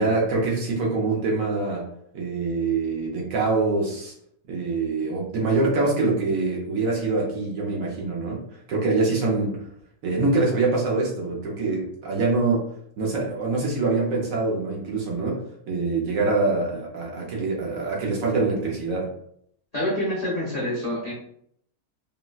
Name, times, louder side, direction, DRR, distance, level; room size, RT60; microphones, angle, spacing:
voice 1, 0.0-1.8 2.1-4.1 4.5-8.4 8.7-9.6 10.0-12.6 13.0-19.1, right 3 dB, 65° right, -2 dB, 1.0 m, -24 dB
voice 2, 19.7-21.1, left 1 dB, 40° left, -7 dB, 0.5 m, -27 dB
3.9 x 2.1 x 2.3 m, 0.70 s
omnidirectional pair, 1.7 m